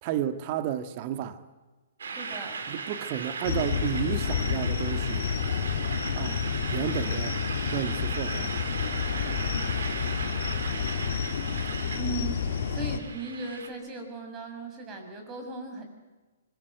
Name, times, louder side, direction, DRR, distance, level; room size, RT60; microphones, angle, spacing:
voice 1, 0.0-1.4 2.7-5.3 6.1-6.4 6.7-7.4 7.7-8.5 10.7-10.9, right 11 dB, 40° right, 1.7 m, -32 dB
sound 1, 2.0-13.7, right 4 dB, 75° right, 3.8 m, -37 dB
voice 2, 2.2-2.6 12.0-15.8, right 3 dB, 25° right, 6.6 m, -37 dB
sound 2, 3.4-13.0, left 7 dB, 60° left, 2.4 m, -30 dB
25.5 x 21.5 x 7.8 m
hypercardioid pair, 130°, 0 cm